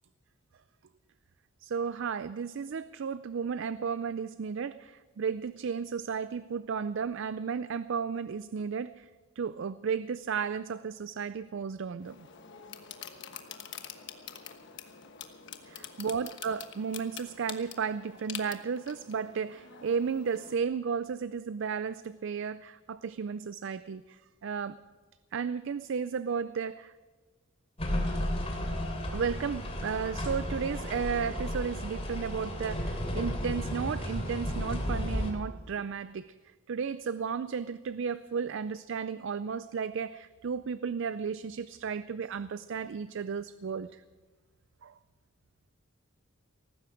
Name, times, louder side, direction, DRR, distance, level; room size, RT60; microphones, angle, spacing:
voice 1, 1.6-9.1 9.4-12.3 15.6-24.8 25.3-26.9 29.1-36.3 36.7-44.0 44.8-44.9, right 6 dB, 60° right, 0.4 m, -34 dB
sound 1, 12.0-20.6, left 8 dB, 55° left, 1.3 m, -46 dB
sound 2, 27.8-35.3, equal, 30° left, 2.8 m, -33 dB
18.0 x 15.0 x 5.1 m
head